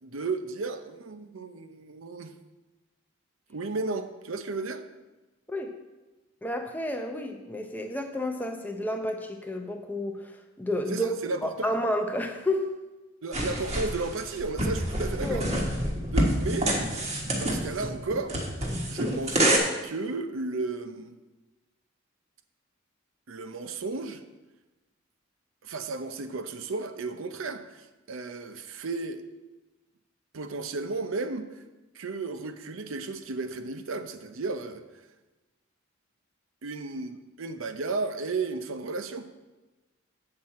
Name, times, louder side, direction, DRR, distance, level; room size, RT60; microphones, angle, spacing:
voice 1, 0.0-2.4 3.5-4.8 10.9-11.7 13.2-15.5 16.0-18.4 18.9-21.1 23.3-24.2 25.6-29.2 30.3-31.6 31.9-35.1 36.6-39.3, right 3 dB, 80° right, 8 dB, 0.6 m, -34 dB
voice 2, 6.4-10.3 10.6-11.1 11.4-12.7 15.2-15.4, left 1 dB, 10° left, 5 dB, 0.6 m, -30 dB
sound 1, 13.3-19.6, right 1 dB, 30° right, 1.3 m, -27 dB
7.7 x 7.3 x 4.3 m, 1.1 s
head